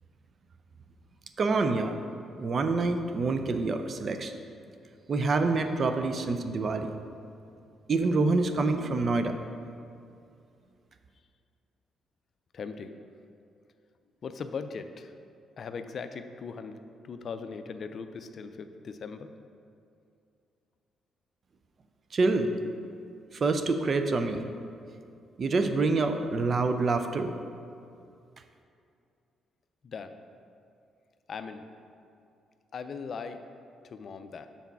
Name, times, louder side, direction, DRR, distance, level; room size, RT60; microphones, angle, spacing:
voice 1, 1.4-1.9 2.4-4.4 5.1-6.9 7.9-9.3 22.1-22.6 23.3-24.4 25.4-27.3, right 3 dB, 50° right, 7 dB, 0.5 m, -26 dB
voice 2, 12.5-13.0 14.2-15.2 15.6-16.8 17.0-19.3 29.8-30.2 31.3-31.7 32.7-33.4 33.8-34.5, left 5 dB, 55° left, 9 dB, 0.4 m, -39 dB
5.8 x 4.1 x 5.9 m, 2.5 s
supercardioid pair, 60°, 0 cm